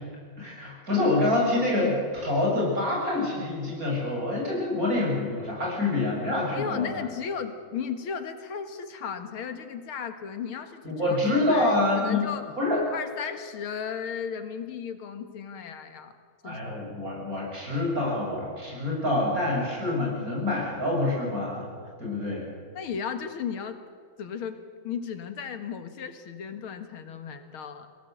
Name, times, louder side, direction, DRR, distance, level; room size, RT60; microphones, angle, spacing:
voice 1, 0.4-6.9 10.8-12.2 12.6-12.8 16.4-21.7 22.0-22.5, left 2 dB, 40° right, -3 dB, 8.0 m, -26 dB
voice 2, 6.5-12.4 12.9-16.1 16.4-16.8 21.8-22.0 22.7-23.8 24.2-24.6 24.8-27.9, left 7 dB, 85° left, 8 dB, 2.4 m, -35 dB
22.0 x 17.5 x 8.0 m, 2.1 s
omnidirectional pair, 2.3 m